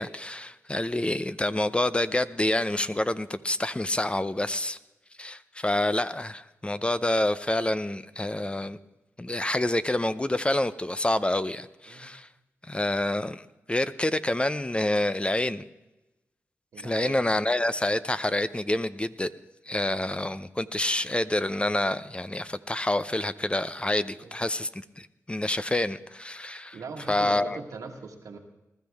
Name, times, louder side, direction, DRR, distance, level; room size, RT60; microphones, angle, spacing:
voice 1, 0.0-4.8 5.2-8.8 9.2-12.3 12.7-15.6 16.8-19.3 19.7-26.8 27.1-27.6, left 1 dB, 20° left, 14 dB, 0.6 m, -27 dB
voice 2, 16.7-17.4 24.1-24.3 26.7-28.4, right 4 dB, 85° right, 4 dB, 1.6 m, -41 dB
20.0 x 13.0 x 3.5 m, 0.98 s
cardioid pair, 55°, 6 cm